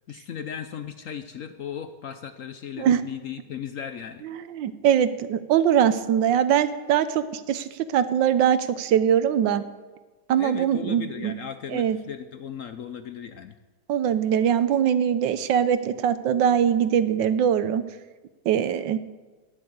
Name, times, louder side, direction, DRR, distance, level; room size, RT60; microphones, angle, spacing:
voice 1, 0.1-4.2 10.4-13.5, left 8 dB, 60° left, 9 dB, 0.8 m, -36 dB
voice 2, 4.2-9.6 10.3-11.3 11.7-12.0 13.9-17.8 18.5-19.0, right 9 dB, 85° right, 13 dB, 1.5 m, -22 dB
11.0 x 10.5 x 8.1 m, 1.3 s
omnidirectional pair, 1.9 m